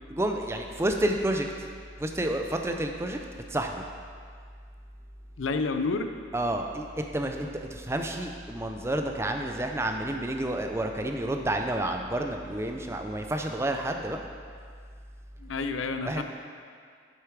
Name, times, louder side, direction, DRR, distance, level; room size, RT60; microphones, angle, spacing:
voice 1, 0.1-1.7 2.0-3.2 3.5-3.8 6.3-14.2 16.0-16.2, right 1 dB, 15° right, 4 dB, 0.4 m, -30 dB
voice 2, 5.4-6.1 15.4-16.2, left 3 dB, 85° left, 8 dB, 0.5 m, -29 dB
8.2 x 6.7 x 4.7 m, 2.1 s
head